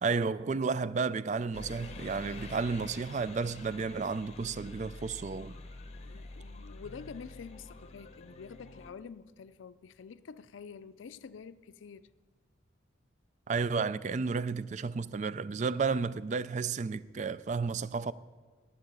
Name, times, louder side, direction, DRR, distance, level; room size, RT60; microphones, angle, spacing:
voice 1, 0.0-5.6 13.5-18.1, right 5 dB, 40° right, 0.3 m, -32 dB
sound 1, 1.5-8.9, left 2 dB, 35° left, 0.8 m, -47 dB
voice 2, 6.0-12.1, left 6 dB, 85° left, 0.4 m, -48 dB
11.5 x 8.2 x 9.5 m
head